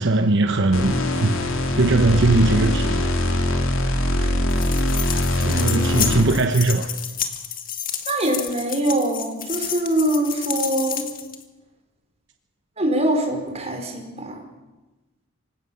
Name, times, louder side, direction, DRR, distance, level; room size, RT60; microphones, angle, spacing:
voice 1, 0.0-1.4 1.8-3.1 5.4-6.9, right 2 dB, 60° right, 7 dB, 1.1 m, -20 dB
sound 1, 0.7-6.5, left 1 dB, 90° left, 2.8 m, -22 dB
sound 2, 4.5-11.4, left 9 dB, 45° left, 1.9 m, -30 dB
voice 2, 8.1-11.0 12.8-14.4, right 1 dB, 30° right, 2 dB, 4.8 m, -23 dB
26.0 x 17.0 x 7.1 m, 1.1 s
head